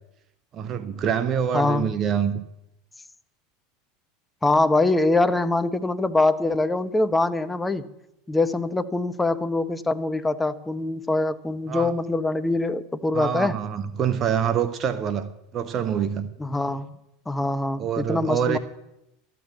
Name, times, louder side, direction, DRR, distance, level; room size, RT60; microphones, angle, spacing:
voice 1, 0.5-2.4 11.7-11.9 13.1-16.3 17.8-18.6, right 8 dB, 35° right, 11 dB, 0.8 m, -26 dB
voice 2, 1.5-1.9 4.4-7.8 8.3-13.5 16.4-16.9 17.3-18.6, left 2 dB, 10° left, 11 dB, 0.9 m, -23 dB
13.0 x 8.4 x 8.3 m, 0.87 s
figure-of-eight pair, 80°, 0 cm